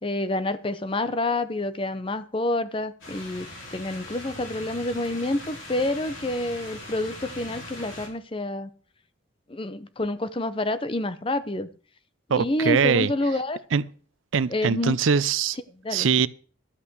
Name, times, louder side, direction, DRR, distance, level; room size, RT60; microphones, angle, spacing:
voice 1, 0.0-8.7 9.5-11.7 12.3-13.6 14.5-15.0 15.8-16.1, left 2 dB, 25° left, 0.7 m, -28 dB
sound 1, 3.0-8.1, left 1 dB, 90° left, 4.8 m, -41 dB
voice 2, 12.3-13.1 13.7-13.8 14.3-15.6 15.9-16.3, right 6 dB, 85° right, 0.5 m, -22 dB
12.5 x 5.7 x 7.9 m
head